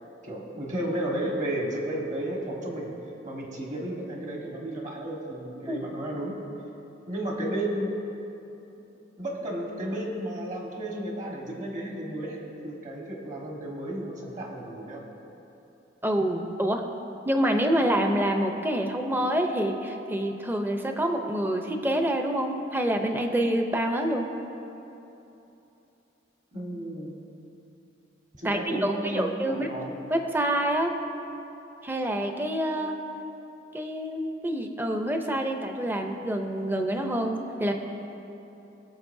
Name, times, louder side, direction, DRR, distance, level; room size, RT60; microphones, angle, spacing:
voice 1, 0.2-2.9 3.2-6.4 7.1-8.0 9.2-15.0 26.5-27.2 28.4-29.9, right 1 dB, 45° right, -1 dB, 1.5 m, -33 dB
voice 2, 16.0-16.8 17.3-24.3 28.4-29.7 30.1-30.9 31.8-33.0 33.7-37.7, right 1 dB, 10° right, 4 dB, 0.6 m, -27 dB
20.0 x 6.9 x 2.7 m, 3.0 s
head